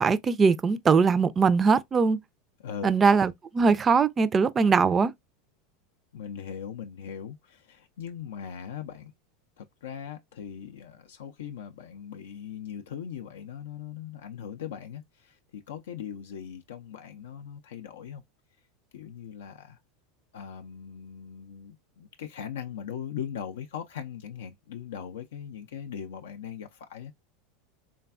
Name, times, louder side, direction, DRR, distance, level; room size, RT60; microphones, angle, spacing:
voice 1, 0.0-2.2 2.8-5.1, right 5 dB, 25° right, 0.3 m, -21 dB
voice 2, 2.6-3.0 6.1-9.1 9.6-18.2 18.9-19.8 20.3-27.1, left 8 dB, 80° left, 0.3 m, -40 dB
3.4 x 2.2 x 2.3 m
hypercardioid pair, 95°, 0 cm